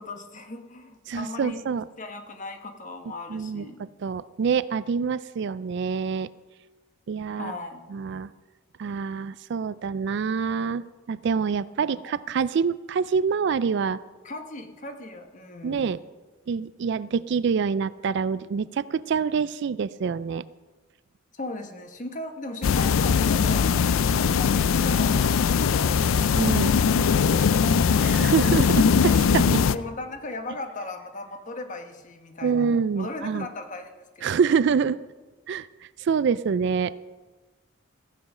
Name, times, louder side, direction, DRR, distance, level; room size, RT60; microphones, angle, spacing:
voice 1, 0.0-1.7 2.0-3.8 7.3-7.8 11.8-12.1 14.2-15.9 21.3-23.7 24.1-26.0 26.3-28.1 29.7-32.7 32.9-34.4, left 2 dB, 40° left, 6 dB, 1.2 m, -38 dB
voice 2, 1.1-1.8 3.3-6.3 7.1-7.5 7.9-8.3 8.8-14.0 15.6-16.0 16.5-20.4 26.3-26.7 28.0-29.6 32.4-33.5 34.2-35.0 35.5-35.7 36.0-36.9, right 6 dB, 60° right, 17 dB, 0.3 m, -26 dB
silent forest, 22.6-29.8, left 6 dB, 80° left, 0.4 m, -21 dB
14.5 x 7.8 x 6.0 m, 1.3 s
head